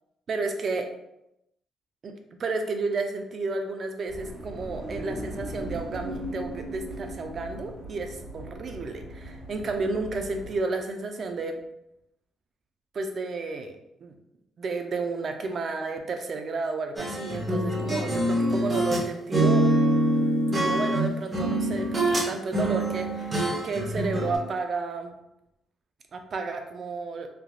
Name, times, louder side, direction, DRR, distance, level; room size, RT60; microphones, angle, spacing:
voice 1, 0.3-0.9 2.0-2.1 2.4-11.6 12.9-14.1 14.6-19.7 20.5-25.2 26.1-27.3, right 3 dB, 50° right, 5 dB, 0.4 m, -32 dB
sound 1, 4.1-10.6, equal, 85° right, 1.2 m, -38 dB
sound 2, 17.0-19.0 19.3-22.3 22.5-24.4, right 1 dB, 30° right, 0.8 m, -25 dB
3.3 x 2.3 x 2.3 m, 0.85 s
cardioid pair, 90°, 0 cm